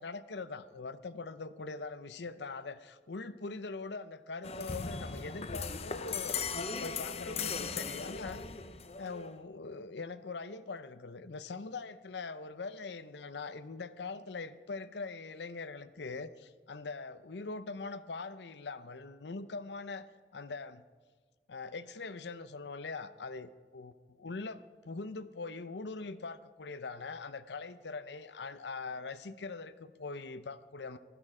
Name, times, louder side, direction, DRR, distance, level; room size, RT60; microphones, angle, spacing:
voice 1, 0.0-8.5 9.0-20.8 21.5-23.9 24.2-31.0, left 3 dB, 75° left, 13 dB, 0.6 m, -42 dB
sound 1, 4.4-9.4, left 5 dB, 35° left, 0.6 m, -38 dB
16.0 x 13.0 x 4.9 m, 1.5 s
head